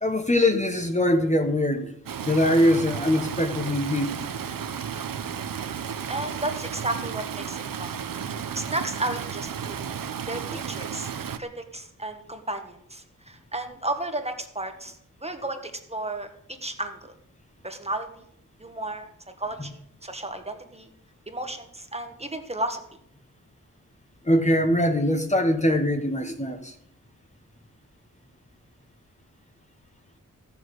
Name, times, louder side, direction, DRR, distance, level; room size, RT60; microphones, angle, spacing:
voice 1, 0.0-1.9 2.3-4.2 10.5-10.6 24.2-26.7, left 1 dB, 20° left, 1.2 m, -22 dB
Stream, 2.1-11.4, right 7 dB, 90° right, 0.8 m, -33 dB
voice 2, 6.1-7.9 8.2-9.8 10.3-11.1 11.4-17.1 17.6-18.1 18.6-19.1 19.4-20.9 21.3-22.8, right 1 dB, 20° right, 1.4 m, -33 dB
15.0 x 7.1 x 8.0 m
wide cardioid pair, 130°, 33 cm